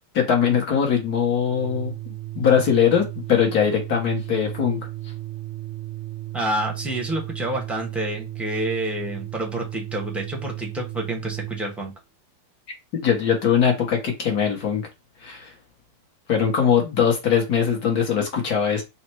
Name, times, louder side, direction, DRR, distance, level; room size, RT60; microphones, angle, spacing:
voice 1, 0.1-4.8 12.9-14.9 15.2-15.5 16.3-18.8, left 7 dB, 60° left, 1.4 m, -21 dB
Organ, 1.5-11.8, right 17 dB, 55° right, 0.9 m, -34 dB
voice 2, 6.3-11.9, right 1 dB, ahead, 0.6 m, -28 dB
4.1 x 2.1 x 4.3 m
omnidirectional pair, 2.1 m